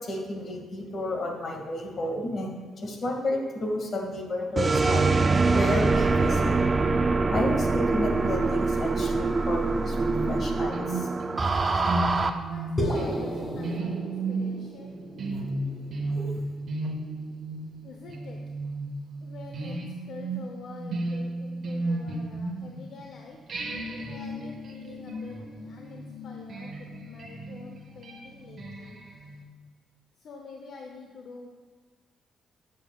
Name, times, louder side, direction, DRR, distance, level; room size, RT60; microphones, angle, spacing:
voice 1, 0.0-5.1 5.5-6.6 7.3-11.1 16.1-16.3, left 1 dB, 50° left, 1 dB, 2.0 m, -31 dB
sound 1, 4.6-12.3, right 3 dB, 30° right, 0.5 m, -24 dB
sound 2, 10.0-23.0 23.5-29.4, right 2 dB, 50° right, 1.4 m, -34 dB
voice 2, 12.4-15.0 17.8-18.4 19.2-19.8 20.1-23.4 24.1-29.0 30.2-31.5, left 4 dB, 65° left, 1 dB, 0.8 m, -46 dB
sound 3, 12.8-17.2, equal, 25° left, 2.2 m, -34 dB
13.0 x 7.8 x 2.4 m, 1.5 s
cardioid pair, 90°, 0 cm